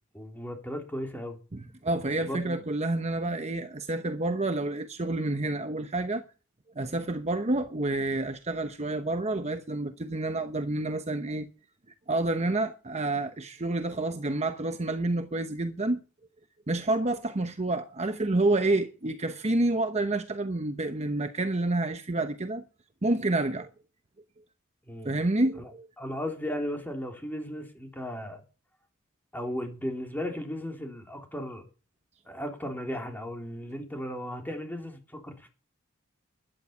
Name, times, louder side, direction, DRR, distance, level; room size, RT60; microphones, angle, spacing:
voice 1, 0.1-1.4 2.2-2.6 24.8-25.1 25.6-25.7 26.0-28.4 29.3-31.6 32.3-35.5, equal, 10° left, 3.5 m, -36 dB
voice 2, 1.5-6.2 6.7-11.5 12.1-16.0 16.7-22.6 23.0-23.7 25.0-25.9, right 2 dB, 30° right, 1.0 m, -29 dB
12.5 x 11.0 x 7.2 m
head